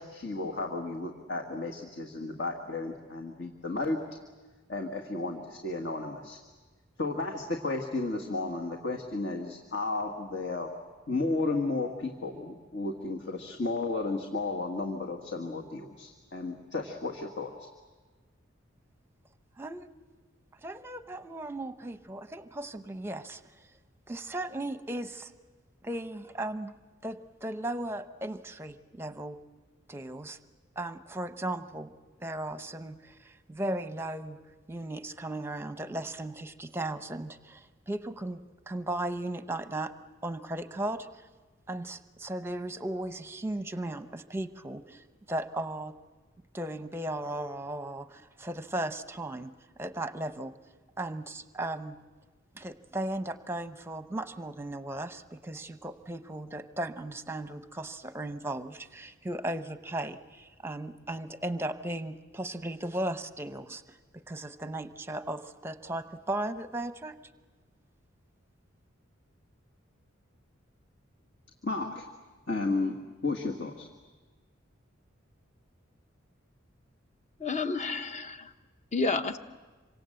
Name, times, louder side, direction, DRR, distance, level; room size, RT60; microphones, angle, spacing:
voice 1, 0.0-4.0 4.7-6.4 7.0-10.7 11.1-17.5 71.6-72.1 72.5-72.9 73.2-73.9, left 3 dB, 60° left, 1 dB, 1.8 m, -33 dB
voice 2, 19.6-19.9 20.6-23.7 24.1-25.3 25.8-26.7 27.0-29.4 29.9-30.4 30.8-31.9 32.2-34.4 34.7-38.4 38.7-39.9 40.2-41.3 41.7-46.0 46.5-49.5 49.8-50.6 51.0-52.0 52.5-67.1, right 1 dB, 10° right, 10 dB, 0.8 m, -36 dB
voice 3, 77.4-78.5 78.9-79.4, left 3 dB, 35° left, 9 dB, 1.0 m, -30 dB
27.0 x 25.0 x 7.8 m, 1.3 s
head